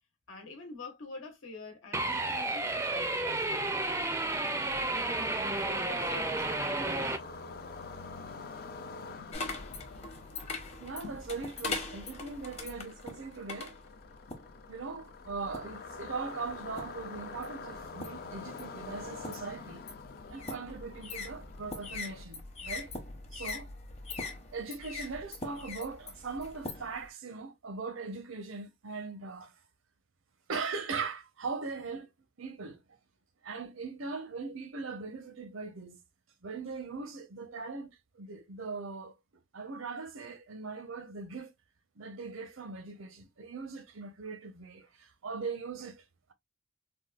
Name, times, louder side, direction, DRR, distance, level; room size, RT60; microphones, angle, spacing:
voice 1, 0.3-3.7 5.5-7.1, left 3 dB, 80° left, 1.0 m, -46 dB
sound 1, 1.9-7.2, right 2 dB, 15° right, 0.4 m, -32 dB
sound 2, 3.8-22.2, left 4 dB, 50° left, 0.4 m, -46 dB
sound 3, 9.3-14.6 15.3-15.8 16.5-17.1 17.4-27.1, left 3 dB, 30° left, 0.8 m, -42 dB
voice 2, 10.8-13.7 14.7-19.8 20.3-22.9 23.3-23.7 24.2-29.5 30.5-32.1 32.4-32.8 33.4-36.0 36.4-39.2 39.5-41.5 42.0-46.0, right 4 dB, 80° right, 0.8 m, -40 dB
3.7 x 2.3 x 2.3 m
head